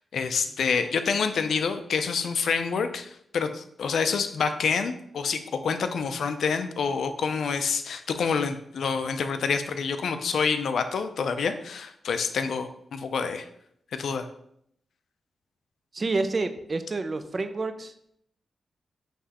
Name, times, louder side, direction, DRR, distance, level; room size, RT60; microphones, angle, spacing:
voice 1, 0.0-13.4 14.0-14.3, left 5 dB, 80° left, 9 dB, 0.4 m, -27 dB
voice 2, 15.9-17.9, right 3 dB, 35° right, 9 dB, 0.4 m, -28 dB
5.8 x 3.1 x 2.9 m, 0.71 s
wide cardioid pair, 115°, 0 cm